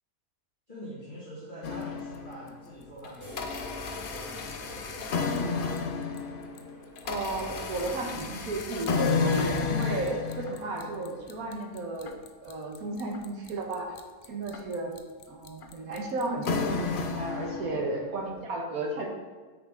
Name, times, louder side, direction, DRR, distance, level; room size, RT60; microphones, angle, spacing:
voice 1, 0.7-5.2 17.4-17.9, right 1 dB, 30° left, -12 dB, 2.5 m, -45 dB
sound 1, 1.6-2.6 3.0-18.1, left 5 dB, 75° left, 0.4 m, -32 dB
sound 2, 3.2-10.7, left 1 dB, 10° left, 2.0 m, -49 dB
voice 2, 7.0-13.9 14.3-15.0 15.3-19.1, right 2 dB, 70° right, 1 dB, 1.6 m, -33 dB
6.4 x 5.7 x 3.8 m, 1.4 s
omnidirectional pair, 1.6 m